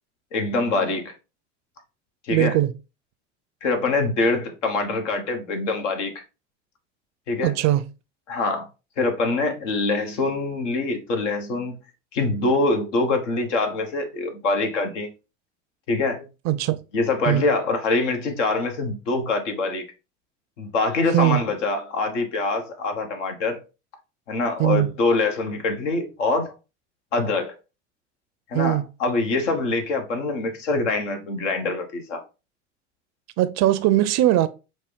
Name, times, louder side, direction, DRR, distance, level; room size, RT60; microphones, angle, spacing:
voice 1, 0.3-1.1 2.3-2.6 3.6-6.2 7.3-7.6 8.3-8.7 9.0-11.8 12.1-15.1 15.9-16.3 16.9-19.8 20.6-23.6 24.3-26.5 27.1-27.6 28.5-32.2, left 3 dB, 80° left, 1.0 m, -24 dB
voice 2, 2.3-2.7 7.4-7.8 16.5-16.8 17.3-17.4 21.1-21.4 24.6-24.9 28.5-28.8 33.4-34.5, right 14 dB, 50° right, 0.5 m, -20 dB
5.2 x 2.0 x 3.6 m
hypercardioid pair, 70°, 36 cm